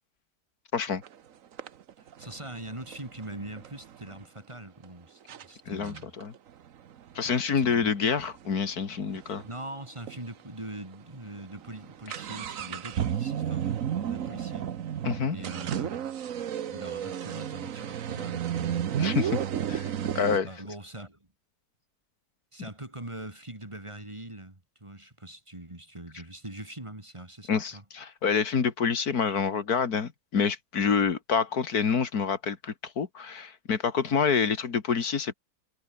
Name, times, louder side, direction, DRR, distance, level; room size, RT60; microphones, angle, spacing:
sound 1, 1.0-1.1 1.6-4.2 4.8-4.9 5.3-5.5 5.8-9.5 9.8-9.9 10.1-10.2 10.8-10.9 11.2-20.4, right 9 dB, 60° right, 1.3 m, -33 dB
voice 1, 2.2-6.1 7.2-7.9 9.4-13.6 14.0-14.6 15.3-16.0 16.7-18.8 19.6-19.8 20.4-21.3 22.5-27.8, right 1 dB, 20° right, 2.6 m, -42 dB
voice 2, 5.7-6.3 7.2-9.4 15.0-15.4 19.0-19.4 19.7-19.9 20.2-20.5 27.5-35.4, left 6 dB, 85° left, 2.4 m, -27 dB
omnidirectional pair, 1.6 m